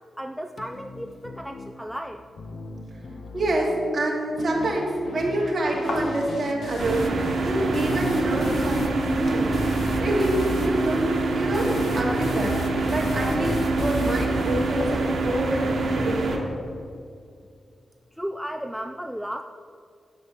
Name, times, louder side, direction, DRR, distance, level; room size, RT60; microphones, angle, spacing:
voice 1, 0.0-2.2 18.1-19.4, equal, ahead, 5 dB, 0.3 m, -34 dB
sound 1, 0.6-15.6, left 2 dB, 50° left, 0.9 m, -36 dB
voice 2, 3.3-9.5 10.0-12.6 12.9-16.4, right 1 dB, 30° right, -3 dB, 2.6 m, -26 dB
sound 2, 5.8-15.4, left 2 dB, 80° left, 2.2 m, -42 dB
sound 3, 6.8-16.4, right 3 dB, 55° right, 1.9 m, -26 dB
10.0 x 7.6 x 7.1 m, 2.4 s
wide cardioid pair, 175°, 0 cm